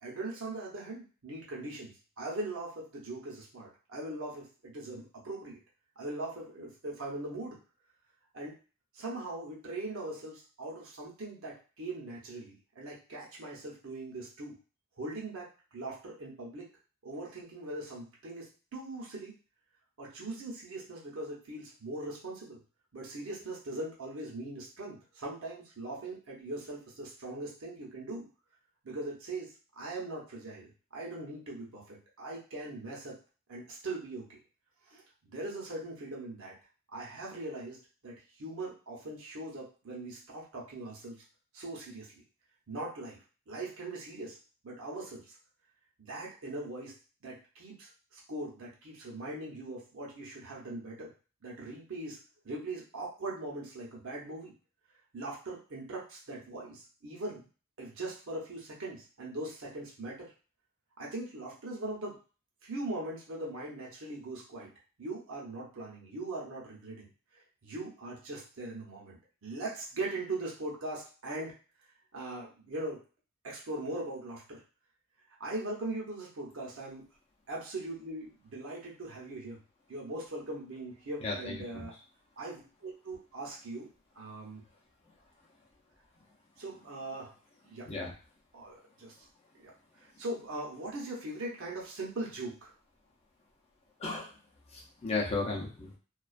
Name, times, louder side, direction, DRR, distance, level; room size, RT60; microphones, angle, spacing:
voice 1, 0.0-5.6 6.0-7.6 8.3-8.6 8.9-14.6 15.0-15.5 15.7-16.7 17.0-18.4 18.7-19.3 20.0-22.6 22.9-28.3 28.8-33.1 33.5-34.2 34.9-36.5 36.9-41.2 41.5-42.2 42.7-44.4 44.6-45.4 46.0-46.9 47.2-51.1 51.4-52.2 52.4-54.5 55.1-57.4 57.8-60.3 61.0-62.2 62.6-64.7 65.0-71.5 72.1-73.0 73.4-74.6 75.4-77.0 77.5-79.6 79.9-81.9 82.4-83.9 84.1-84.6 86.6-87.3 87.6-87.9 88.5-89.1 89.5-89.7 90.0-92.7, right 2 dB, 65° right, -4 dB, 0.8 m, -40 dB
voice 2, 81.2-81.9 87.9-88.1 94.0-94.3 94.7-95.9, left 3 dB, 30° left, -3 dB, 0.6 m, -34 dB
2.3 x 2.3 x 2.4 m, 0.36 s
head